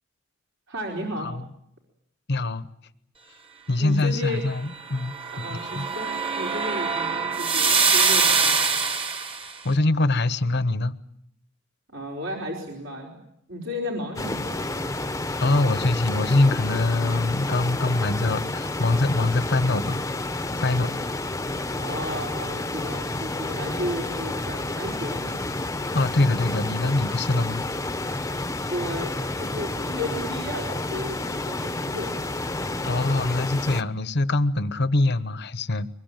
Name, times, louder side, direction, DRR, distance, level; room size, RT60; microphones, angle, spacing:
voice 1, 0.7-1.3 3.8-4.4 5.3-8.7 11.9-13.2 13.5-14.6 21.8-25.4 28.7-32.3, left 1 dB, 65° right, 4.7 m, -33 dB
voice 2, 2.3-2.7 3.7-5.9 9.6-10.9 15.4-20.0 20.4-21.0 25.9-27.6 32.8-35.9, left 2 dB, 60° left, 1.1 m, -24 dB
sound 1, 4.9-9.5, right 5 dB, 30° right, 1.7 m, -23 dB
sound 2, 14.2-33.8, left 2 dB, 15° left, 0.9 m, -30 dB
24.0 x 21.5 x 9.2 m
head